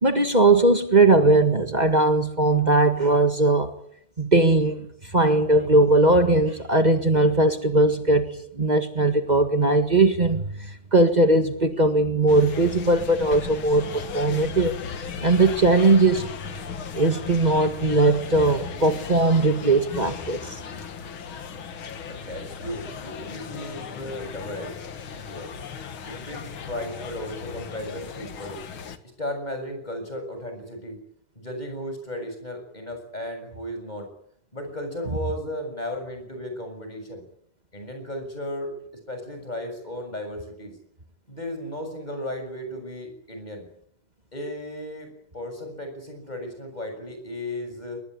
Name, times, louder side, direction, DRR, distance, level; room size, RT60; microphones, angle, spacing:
voice 1, 0.0-3.7 4.2-14.8 15.2-16.3 16.9-20.6, right 2 dB, 75° right, 7 dB, 0.4 m, -19 dB
sound 1, 12.3-29.0, left 6 dB, 50° left, 1.8 m, -36 dB
voice 2, 22.1-24.8 25.3-25.5 26.1-28.6 29.2-31.0 31.4-34.1 34.5-37.2 37.7-38.7 39.1-40.7 41.3-43.7 44.3-45.1 45.3-48.0, left 1 dB, 10° left, 5 dB, 6.9 m, -35 dB
24.0 x 20.0 x 9.8 m, 0.69 s
omnidirectional pair, 4.0 m